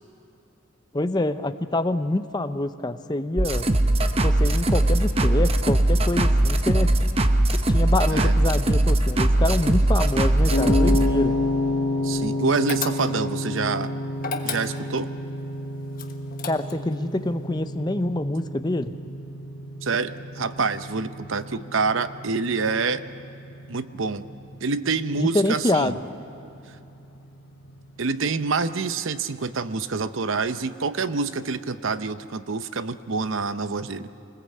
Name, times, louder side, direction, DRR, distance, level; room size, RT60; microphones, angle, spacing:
voice 1, 0.9-3.7 4.2-6.9 7.7-11.3 16.5-18.9 25.2-25.9, left 1 dB, 20° left, 10 dB, 0.7 m, -26 dB
sound 1, 3.4-11.1, right 1 dB, 30° right, 0.9 m, -20 dB
sound 2, 10.5-28.7, left 2 dB, 60° left, 3.6 m, -31 dB
voice 2, 12.0-13.9 14.4-15.1 19.8-23.0 23.7-24.2 24.6-25.9 28.0-34.1, right 4 dB, 65° right, 12 dB, 0.8 m, -26 dB
sound 3, 12.7-13.4 14.2-15.1 16.0-16.9, left 5 dB, 40° left, 1.4 m, -32 dB
24.5 x 19.5 x 8.5 m, 3.0 s
head